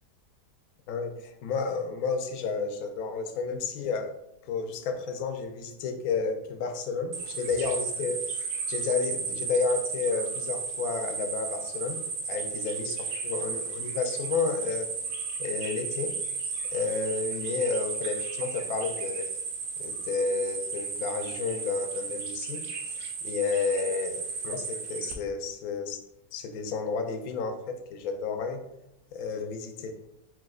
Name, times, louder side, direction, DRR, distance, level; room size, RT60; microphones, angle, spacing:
voice 1, 0.9-4.1 4.5-8.4 8.7-14.9 15.4-16.2 16.7-19.3 19.8-26.0 26.3-28.6 29.1-30.0, left 4 dB, 70° left, 6 dB, 1.0 m, -31 dB
sound 1, 7.1-25.1, right 5 dB, 60° right, 1.0 m, -34 dB
4.8 x 4.0 x 2.3 m, 0.84 s
omnidirectional pair, 1.7 m